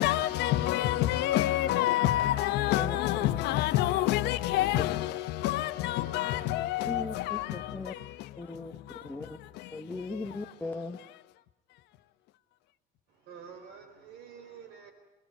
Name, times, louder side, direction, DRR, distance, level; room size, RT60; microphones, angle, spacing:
voice 1, 0.0-8.4 8.9-9.8, left 14 dB, 90° left, 1.2 m, -28 dB
voice 2, 2.8-3.4 6.9-7.9 8.4-8.7 9.0-9.4 9.7-11.0, left 2 dB, 10° left, 1.3 m, -38 dB
voice 3, 13.1-14.9, right 7 dB, 85° right, 4.7 m, -48 dB
26.0 x 20.0 x 9.3 m
cardioid pair, 110°, 17 cm